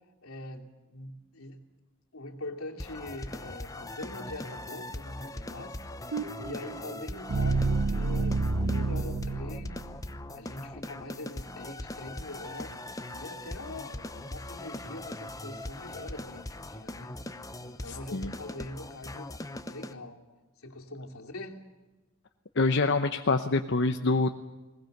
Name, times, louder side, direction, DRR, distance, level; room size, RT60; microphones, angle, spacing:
voice 1, 0.2-1.6 2.1-9.9 10.3-12.8 13.1-17.2 17.6-20.2 20.6-21.6, left 2 dB, 80° left, 1 dB, 2.8 m, -43 dB
sound 1, 2.8-19.9, left 1 dB, 15° left, 0.8 m, -41 dB
sound 2, 6.1-10.2, right 3 dB, 65° right, 0.8 m, -29 dB
voice 2, 17.9-18.3 22.6-24.3, left 3 dB, 55° left, 6 dB, 0.9 m, -26 dB
21.0 x 19.5 x 7.9 m, 1.2 s
head